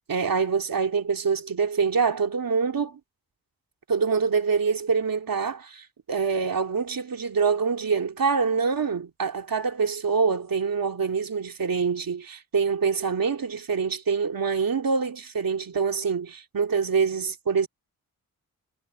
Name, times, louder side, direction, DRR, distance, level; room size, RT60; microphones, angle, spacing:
voice 1, 0.1-3.0 3.9-17.7, right 5 dB, 65° right, 2.8 m, -25 dB
cardioid pair, 60°, 37 cm